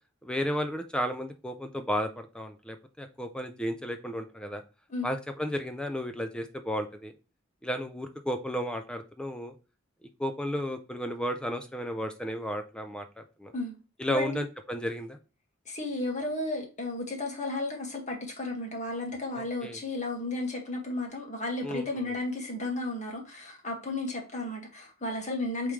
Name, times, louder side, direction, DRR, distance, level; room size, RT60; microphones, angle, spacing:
voice 1, 0.2-4.6 5.0-7.1 7.6-9.5 10.2-13.5 14.0-15.2 19.3-19.8 21.6-21.9, equal, 5° left, 0.5 m, -33 dB
voice 2, 14.1-14.4 15.7-25.7, left 2 dB, 35° left, 1.9 m, -33 dB
8.4 x 3.6 x 3.2 m
head